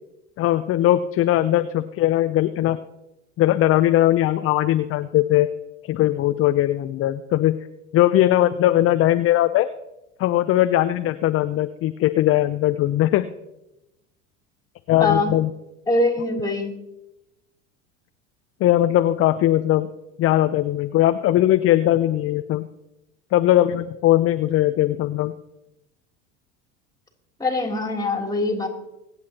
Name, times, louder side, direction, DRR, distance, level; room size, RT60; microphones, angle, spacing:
voice 1, 0.4-2.8 3.4-5.5 5.9-7.6 7.9-9.7 10.2-13.3 14.9-15.5 18.6-19.9 20.2-22.7 23.3-25.3, left 13 dB, 40° left, 10 dB, 0.6 m, -19 dB
voice 2, 15.0-15.3 15.9-16.7 27.4-28.7, left 2 dB, 10° left, 1 dB, 3.1 m, -22 dB
24.5 x 8.5 x 2.9 m, 0.92 s
hypercardioid pair, 80°, 37 cm